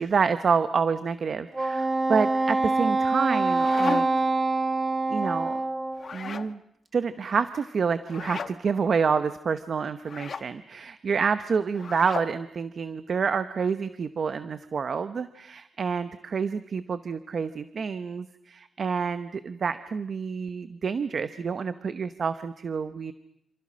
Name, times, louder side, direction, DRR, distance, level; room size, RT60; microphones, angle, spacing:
voice 1, 0.0-4.1 5.1-5.6 6.1-6.6 6.9-23.1, right 5 dB, 45° right, 11 dB, 0.9 m, -28 dB
Wind instrument woodwind instrument, 1.5-6.1, right 3 dB, 15° right, 1.7 m, -25 dB
sound 1, 3.2-4.3 5.9-6.5 8.1-8.6 10.0-10.5 11.7-12.4, left 5 dB, 45° left, 1.1 m, -35 dB
28.5 x 27.5 x 6.3 m, 0.79 s
wide cardioid pair, 150°, 0 cm